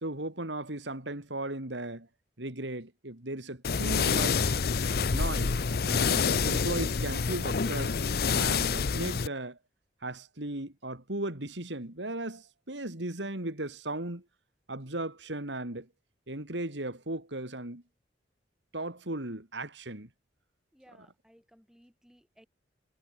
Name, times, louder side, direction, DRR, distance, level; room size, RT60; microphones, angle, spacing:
voice 1, 0.0-2.1 2.4-4.6 5.1-8.0 8.3-9.6 10.0-14.2 14.7-15.9 16.3-17.8 18.7-20.1 21.0-21.1, right 1 dB, 75° right, 3.5 m, -36 dB
sound 1, 3.6-9.3, left 5 dB, 55° left, 0.6 m, -27 dB
voice 2, 20.7-22.5, equal, 5° right, 7.4 m, -60 dB
head